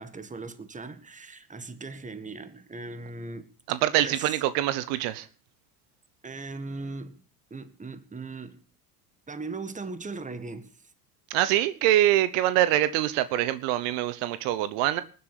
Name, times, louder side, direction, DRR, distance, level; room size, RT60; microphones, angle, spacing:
voice 1, 0.0-3.5 4.0-4.4 6.2-7.2 7.5-8.6 9.3-10.7, right 3 dB, 15° right, 1.8 m, -39 dB
voice 2, 3.7-5.3 11.3-15.0, right 13 dB, 65° right, 1.1 m, -24 dB
19.5 x 7.8 x 6.9 m
hypercardioid pair, 85°, 48 cm